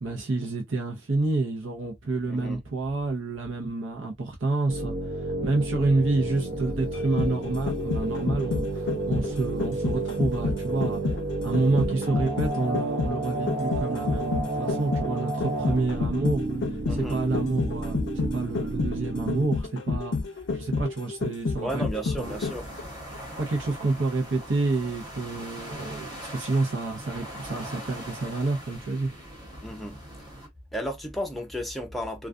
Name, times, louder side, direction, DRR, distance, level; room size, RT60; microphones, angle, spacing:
voice 1, 0.0-11.2 11.4-20.2 20.5-22.4 23.4-29.1, right 3 dB, 85° right, 0.7 m, -29 dB
voice 2, 2.3-2.6 16.8-17.2 21.6-22.7 29.6-30.0 30.7-32.3, equal, ahead, 0.5 m, -33 dB
sound 1, 4.7-19.5, right 2 dB, 50° right, 0.6 m, -31 dB
sound 2, 6.9-22.8 23.1-23.2, left 4 dB, 75° left, 0.5 m, -30 dB
sound 3, 22.2-30.5, equal, 20° right, 0.9 m, -41 dB
2.4 x 2.2 x 2.4 m
head